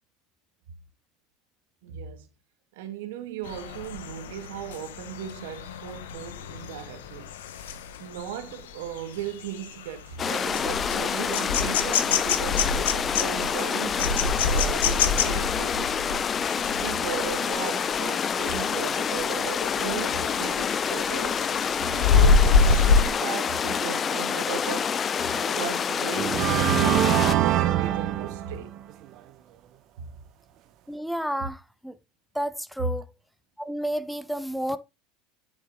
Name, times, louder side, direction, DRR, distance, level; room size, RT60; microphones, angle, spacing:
voice 1, 1.8-2.3 2.7-7.3 8.0-16.1 16.7-21.4 21.8-24.9 25.5-28.8 30.0-30.1 31.4-31.5, right 9 dB, 70° right, 1.5 m, -37 dB
sound 1, 3.5-18.0 18.4-18.7 19.0-20.7 21.1-23.1, left 5 dB, 80° left, 1.0 m, -26 dB
sound 2, 10.2-27.3, left 7 dB, 35° left, 0.6 m, -27 dB
sound 3, 25.3-25.4 26.1-28.9, right 12 dB, 55° right, 1.0 m, -24 dB
voice 2, 30.9-32.0 32.3-33.1 33.6-34.8, equal, ahead, 0.9 m, -31 dB
9.6 x 5.9 x 3.8 m
hypercardioid pair, 80°, 0 cm